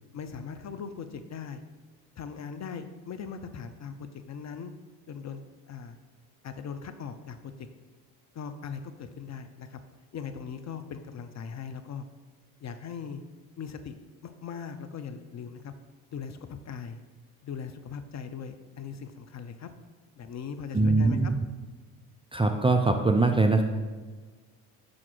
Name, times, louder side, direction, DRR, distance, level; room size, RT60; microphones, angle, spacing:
voice 1, 0.1-1.6 2.2-4.7 5.1-5.4 5.7-6.0 6.4-7.5 8.3-9.8 10.1-12.1 12.6-13.2 13.6-15.7 16.1-17.0 17.4-19.7 20.2-21.3, left 6 dB, 35° left, 9 dB, 0.6 m, -39 dB
voice 2, 20.7-21.3 22.3-23.6, right 3 dB, 10° right, 4 dB, 0.4 m, -22 dB
5.9 x 3.8 x 6.1 m, 1.4 s
hypercardioid pair, 55°, 45 cm